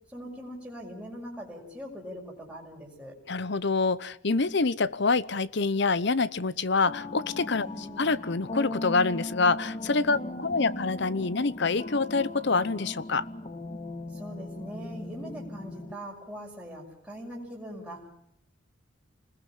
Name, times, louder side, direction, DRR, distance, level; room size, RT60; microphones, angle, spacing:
voice 1, 0.1-3.1 7.6-8.1 10.1-11.0 14.1-18.1, equal, 5° right, 6.2 m, -42 dB
voice 2, 3.3-7.7 8.0-13.3, left 4 dB, 60° left, 0.9 m, -26 dB
sound 1, 6.9-15.9, left 1 dB, 30° left, 1.7 m, -38 dB
28.0 x 20.5 x 7.2 m
head